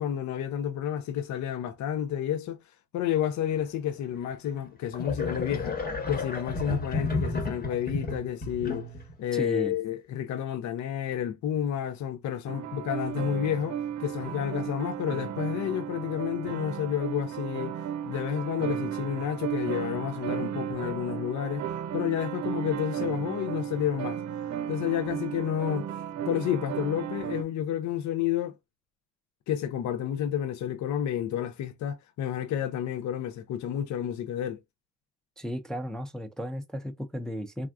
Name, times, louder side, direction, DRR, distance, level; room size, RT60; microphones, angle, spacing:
voice 1, 0.0-2.6 2.9-5.7 6.1-8.9 9.2-17.7 18.0-21.6 21.9-24.2 24.7-25.9 26.3-28.5 29.5-34.6, left 10 dB, 70° left, 0.6 m, -30 dB
sound 1, 4.2-4.3 4.9-9.1, left 3 dB, 30° left, 1.2 m, -32 dB
voice 2, 9.3-9.7 35.4-37.7, equal, ahead, 0.4 m, -34 dB
sound 2, 12.5-27.4, right 9 dB, 60° right, 0.6 m, -34 dB
3.5 x 2.3 x 2.4 m
cardioid pair, 90°, 30 cm